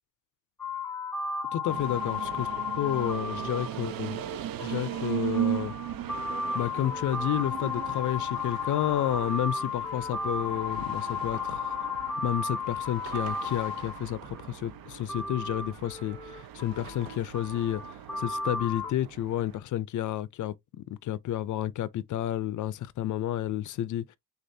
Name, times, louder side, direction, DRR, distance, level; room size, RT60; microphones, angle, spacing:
sound 1, 0.6-14.4 15.1-18.9, left 4 dB, 5° left, 0.6 m, -34 dB
voice 1, 1.5-2.5 2.8-4.2 4.6-5.7 6.5-11.8 12.2-24.2, left 12 dB, 55° left, 0.5 m, -31 dB
sound 2, 1.7-19.6, right 11 dB, 70° right, 0.6 m, -38 dB
6.5 x 2.4 x 2.6 m
cardioid pair, 145°, 36 cm